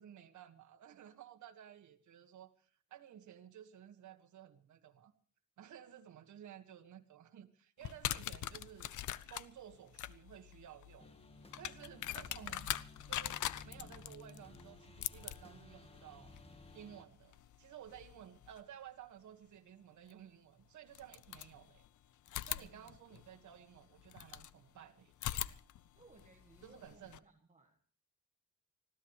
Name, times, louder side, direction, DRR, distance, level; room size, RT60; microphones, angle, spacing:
voice 1, 0.0-5.1 5.6-9.0 9.3-11.1 11.6-12.7 13.1-16.3 16.7-21.9 22.4-25.1 26.6-27.2, right 10 dB, 75° right, 7 dB, 1.7 m, -55 dB
sound 1, 7.8-18.6 20.1-20.2 20.9-21.9 22.3-24.5 25.1-27.2, left 12 dB, 80° left, 0.7 m, -43 dB
sound 2, 11.0-17.0, left 2 dB, 20° left, 1.5 m, -57 dB
voice 2, 12.0-12.3 22.5-23.0 25.9-28.0, right 3 dB, 25° right, 3 dB, 1.6 m, -63 dB
25.0 x 16.0 x 3.2 m, 0.43 s
cardioid pair, 130°, 30 cm